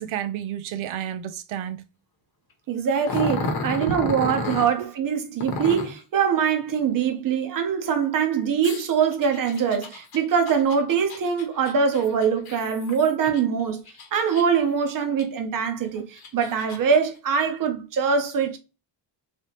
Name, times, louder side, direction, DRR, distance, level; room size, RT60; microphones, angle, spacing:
voice 1, 0.0-1.8 3.8-4.3 4.8-4.9, right 10 dB, 85° right, 0.6 m, -31 dB
voice 2, 2.7-13.8 14.1-18.6, right 6 dB, 45° right, 0.8 m, -23 dB
Growling, 3.0-4.7 5.4-6.0 8.6-13.4 13.9-14.7 15.2-15.3 16.0-17.0, left 3 dB, 50° left, 0.9 m, -32 dB
3.3 x 2.9 x 2.9 m
cardioid pair, 170°, 47 cm